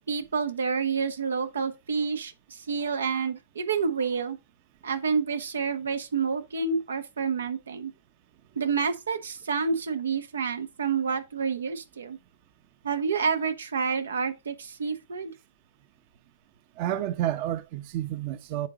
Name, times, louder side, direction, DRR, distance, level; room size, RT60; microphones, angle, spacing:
voice 1, 0.1-4.4 4.8-7.9 8.6-12.2 12.8-15.3, right 5 dB, 90° right, 1.3 m, -29 dB
voice 2, 16.8-18.7, right 12 dB, 45° right, 0.8 m, -30 dB
9.2 x 5.9 x 2.7 m
hypercardioid pair, 140°, 0 cm